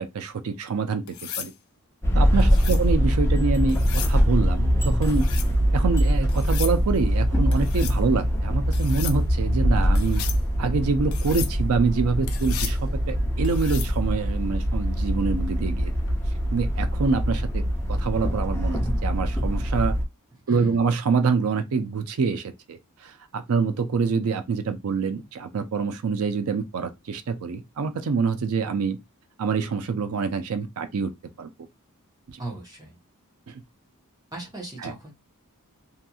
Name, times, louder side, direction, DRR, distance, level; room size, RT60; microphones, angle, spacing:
voice 1, 0.0-1.5 2.1-3.8 4.1-5.3 5.7-10.3 10.6-15.9 16.5-17.6 17.9-19.9 20.5-29.0 29.4-31.1 31.4-31.5 32.3-32.4 33.5-33.6 34.8-34.9, right 5 dB, 70° right, 0.4 m, -26 dB
sound 1, 1.1-1.5 2.4-2.9 3.7-4.2 5.0-5.5 6.3-6.8 7.5-8.0 8.7-9.2 10.0-10.4 11.1-11.5 12.3-12.8 13.4-13.9 15.9-16.1, left 10 dB, 65° left, 0.5 m, -35 dB
sound 2, 2.0-20.0, equal, 10° left, 0.6 m, -23 dB
voice 2, 2.3-2.7 11.3-11.4 20.5-20.8 32.4-33.0 34.3-35.1, right 2 dB, 15° right, 1.0 m, -36 dB
2.8 x 2.6 x 2.3 m
head